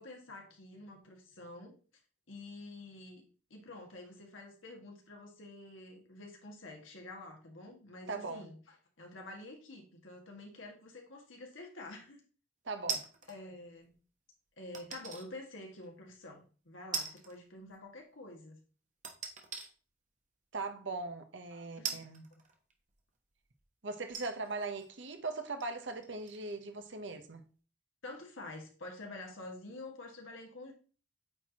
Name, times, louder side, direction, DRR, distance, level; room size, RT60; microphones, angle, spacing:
voice 1, 0.0-1.7 2.3-3.2 3.5-8.5 9.0-12.2 13.3-14.0 14.6-18.6 21.5-22.1 28.0-30.7, left 2 dB, 85° left, 1.8 m, -48 dB
voice 2, 8.1-8.5 12.6-13.0 20.5-22.3 23.8-27.4, right 3 dB, 70° right, 0.9 m, -40 dB
sound 1, 12.9-13.4 14.7-15.3 15.8-15.9 16.9-17.4 17.7-17.8 19.0-19.7 20.5-20.6 21.8-22.9 23.6-23.7 24.1-26.5 26.8-26.9, right 6 dB, 40° right, 1.0 m, -41 dB
8.8 x 4.4 x 2.9 m
head